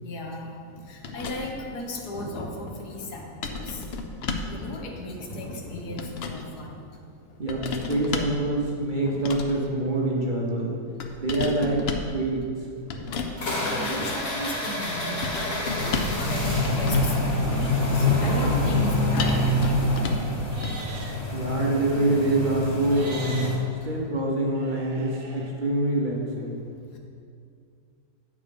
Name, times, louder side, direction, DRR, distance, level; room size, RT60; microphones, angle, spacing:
voice 1, 0.0-3.9 4.3-7.4 9.0-9.1 12.9-19.8 20.1-20.7 23.8-24.0 26.9-27.0, left 1 dB, 90° left, 1 dB, 1.6 m, -36 dB
sound 1, 1.0-1.7 3.4-4.6 5.6-6.5 7.5-8.4 9.1-9.7 11.0-12.2 12.9-13.4 15.2-16.3 16.6-17.3 19.2-20.3 20.6-20.8, left 4 dB, 65° left, 0.6 m, -32 dB
voice 2, 7.4-10.8 11.2-12.4 21.3-26.6, right 1 dB, 40° right, -3 dB, 0.7 m, -25 dB
sound 2, 13.4-23.6, left 1 dB, 50° left, 1.8 m, -26 dB
Livestock farm animals working animals, 20.4-21.2 22.8-23.5 24.6-25.5, right 3 dB, 70° right, 1.3 m, -41 dB
8.4 x 4.8 x 5.1 m, 2.3 s
omnidirectional pair, 1.7 m